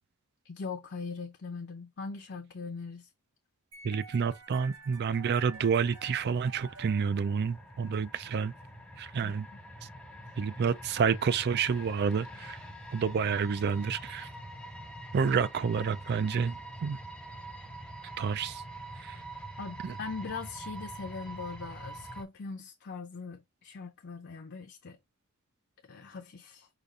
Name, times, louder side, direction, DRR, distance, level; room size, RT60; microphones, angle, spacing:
voice 1, 0.4-3.1 9.2-9.3 19.6-25.0 25.9-26.7, left 4 dB, 50° left, 0.6 m, -41 dB
sound 1, 3.7-7.8, right 4 dB, 70° right, 1.3 m, -50 dB
voice 2, 3.8-8.5 9.0-9.5 10.4-12.6 12.9-14.3 15.1-17.0 18.2-18.6 19.0-19.2 19.8-19.9, right 6 dB, 45° right, 0.4 m, -29 dB
sound 2, 4.9-22.2, right 1 dB, 5° left, 0.7 m, -45 dB
5.0 x 2.4 x 4.0 m
head